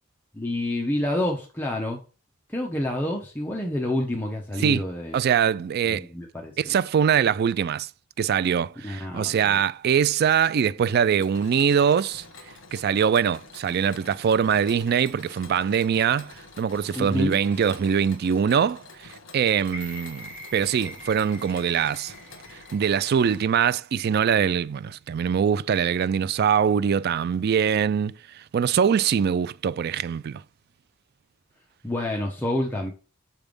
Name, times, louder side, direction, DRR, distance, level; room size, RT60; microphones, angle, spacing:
voice 1, 0.3-2.0 2.5-5.2 5.9-6.7 8.8-9.6 16.9-17.4 31.8-32.9, left 1 dB, 10° left, 0.9 m, -28 dB
voice 2, 5.1-6.1 6.6-7.9 8.2-12.2 12.7-22.1 22.7-30.4, right 7 dB, 50° right, 0.3 m, -23 dB
Mechanisms, 11.2-23.4, left 3 dB, 65° left, 1.2 m, -47 dB
sound 1, 19.6-23.8 24.2-24.3, equal, 5° right, 1.8 m, -44 dB
7.0 x 3.5 x 5.2 m
head